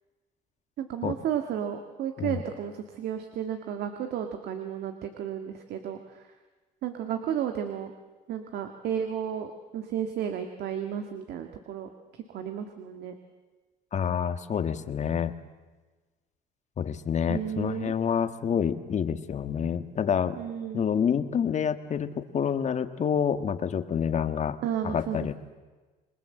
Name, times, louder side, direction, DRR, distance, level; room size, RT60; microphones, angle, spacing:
voice 1, 0.8-6.2 6.8-7.9 8.3-13.1 17.3-17.9 20.4-20.8 24.6-25.3, right 9 dB, 75° right, 6 dB, 1.9 m, -33 dB
voice 2, 13.9-15.3 16.8-20.4 20.7-24.6 24.8-25.3, left 7 dB, 45° left, 9 dB, 1.6 m, -28 dB
27.5 x 21.5 x 7.8 m, 1.3 s
cardioid pair, 110°, 17 cm